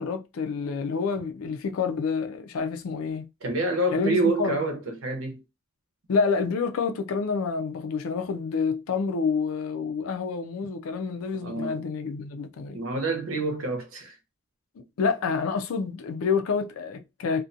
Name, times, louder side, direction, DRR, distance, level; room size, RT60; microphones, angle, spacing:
voice 1, 0.0-3.3 3.9-4.6 6.1-12.8 14.8-17.4, left 5 dB, 75° left, 0.4 m, -28 dB
voice 2, 3.4-5.4 11.4-11.8 12.7-14.2, right 2 dB, 70° right, 0.8 m, -27 dB
2.5 x 2.2 x 2.6 m
head